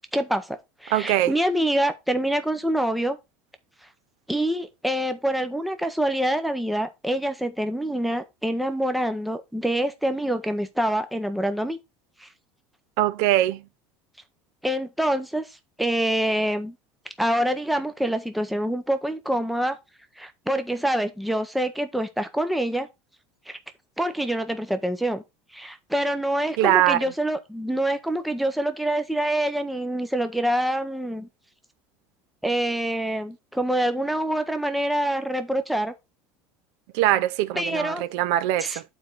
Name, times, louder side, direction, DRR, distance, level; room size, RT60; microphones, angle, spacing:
voice 1, 0.1-3.2 4.3-11.8 12.2-12.3 14.6-15.5 15.8-16.8 17.2-19.8 20.2-22.9 23.5-23.6 24.0-25.2 25.5-31.3 32.4-35.9 37.5-38.0 38.6-38.8, right 1 dB, ahead, 0.6 m, -26 dB
voice 2, 0.9-1.3 13.0-13.6 26.6-27.0 36.9-38.8, right 14 dB, 60° right, 0.5 m, -22 dB
8.7 x 4.4 x 3.8 m
cardioid pair, 175°, 7 cm